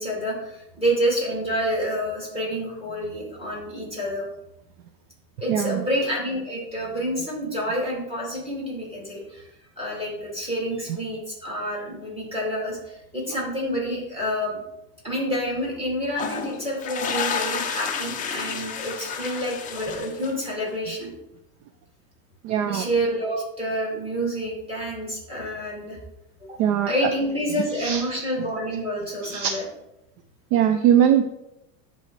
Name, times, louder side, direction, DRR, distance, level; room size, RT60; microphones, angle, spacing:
voice 1, 0.0-4.3 5.4-9.5 9.8-14.6 15.0-21.1 22.6-26.0 26.5-26.6 26.9-29.6, equal, 10° right, -3 dB, 2.7 m, -28 dB
voice 2, 5.5-5.8 22.4-22.9 26.6-26.9 27.7-28.2 29.2-29.6 30.5-31.2, right 9 dB, 55° right, 8 dB, 0.5 m, -21 dB
sound 1, 16.1-20.7, left 6 dB, 20° left, 0.5 m, -30 dB
10.5 x 3.8 x 3.3 m, 0.87 s
supercardioid pair, 135°, 47 cm